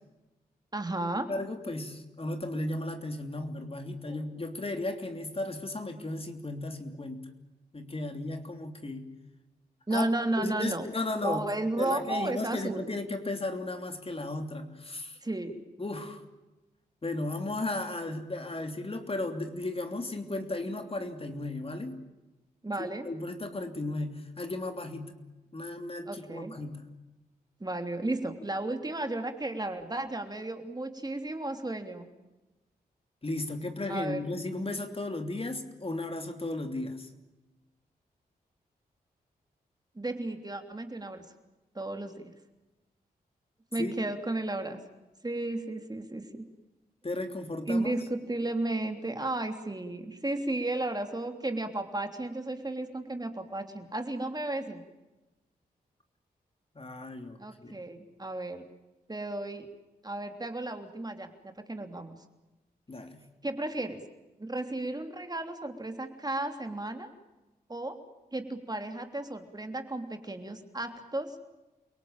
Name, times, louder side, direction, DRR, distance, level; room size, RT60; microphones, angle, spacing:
voice 1, 0.7-1.3 4.0-4.2 9.9-10.9 11.2-12.9 15.2-15.6 22.6-23.1 26.0-26.5 27.6-32.1 33.9-34.3 39.9-41.2 41.7-42.3 43.7-44.8 45.2-46.5 47.7-54.9 57.4-58.6 59.1-59.7 60.0-62.2 63.4-64.0 64.4-67.1 67.7-68.0 68.3-71.3, right 2 dB, 25° right, 6 dB, 3.2 m, -33 dB
voice 2, 1.3-7.2 7.7-9.1 9.9-10.1 10.4-11.4 11.8-15.2 15.8-16.2 17.0-22.0 22.8-25.1 25.5-26.9 33.2-37.1 43.8-43.9 47.0-47.9 56.7-57.8 62.9-63.2, left 2 dB, 35° left, 6 dB, 3.1 m, -35 dB
29.0 x 18.0 x 9.0 m, 1.1 s
cardioid pair, 50°, 17 cm